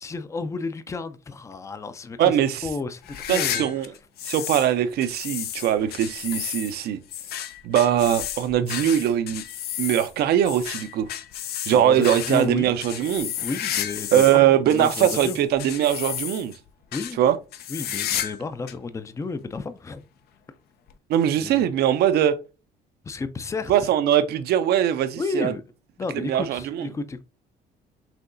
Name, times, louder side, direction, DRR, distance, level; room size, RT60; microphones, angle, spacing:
voice 1, 0.0-2.3 2.6-3.7 11.7-12.8 13.4-14.2 14.7-15.4 16.9-17.2 17.7-20.0 21.4-21.7 23.0-23.7 25.2-25.6 26.0-27.2, left 4 dB, 15° left, 0.4 m, -32 dB
voice 2, 2.2-2.7 3.3-3.9 4.3-7.0 7.6-9.4 9.8-11.1 11.7-13.3 14.1-16.5 17.2-17.4 21.1-22.4 23.7-25.5 26.1-26.9, right 10 dB, 70° right, 0.6 m, -21 dB
sound 1, 3.0-4.7 5.0-14.4 14.7-16.6 16.9-17.1 17.5-18.4 18.7-18.8 19.6-19.7 20.9-21.0, left 10 dB, 70° left, 0.6 m, -32 dB
5.8 x 2.8 x 2.6 m
cardioid pair, 110°, 17 cm